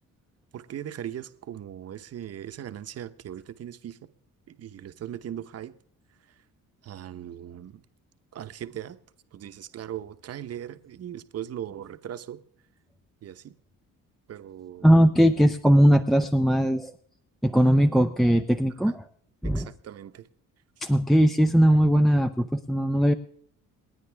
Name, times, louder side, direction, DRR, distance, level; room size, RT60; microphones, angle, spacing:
voice 1, 0.5-4.1 4.5-5.7 6.8-7.8 8.3-9.0 9.3-12.4 13.2-13.5 14.3-15.0 19.5-20.3, right 10 dB, 45° right, 1.0 m, -39 dB
voice 2, 14.8-16.9 17.4-19.0 19.4-19.7 20.8-23.1, equal, ahead, 0.5 m, -20 dB
28.5 x 9.9 x 3.4 m
cardioid pair, 135°, 34 cm